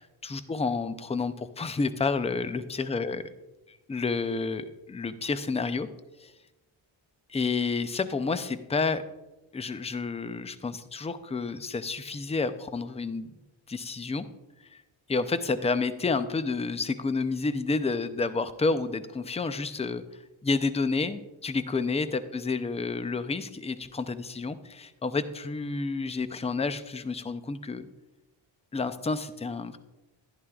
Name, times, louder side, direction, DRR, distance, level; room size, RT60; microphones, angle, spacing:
voice 1, 0.0-3.2 3.7-5.9 7.3-9.0 9.5-13.3 13.7-14.3 14.7-14.8 15.1-27.9 28.7-29.8, left 4 dB, 15° left, 12 dB, 0.4 m, -30 dB
11.0 x 11.0 x 2.3 m, 1.0 s
wide cardioid pair, 110°, 49 cm